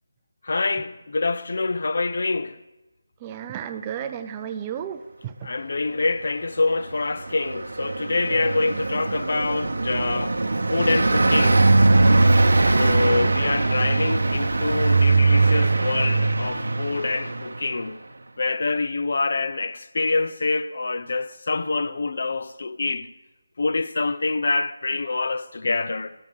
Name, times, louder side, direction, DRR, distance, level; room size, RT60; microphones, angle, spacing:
voice 1, 0.4-2.6 5.4-10.4 10.7-11.7 12.8-18.0 18.4-23.1 23.6-26.1, left 3 dB, 60° left, 0.4 m, -26 dB
voice 2, 3.2-5.5, right 9 dB, 20° right, 0.4 m, -33 dB
Car passing by, 6.7-17.8, right 3 dB, 75° right, 0.7 m, -20 dB
14.0 x 5.2 x 6.4 m
figure-of-eight pair, 165°, 0 cm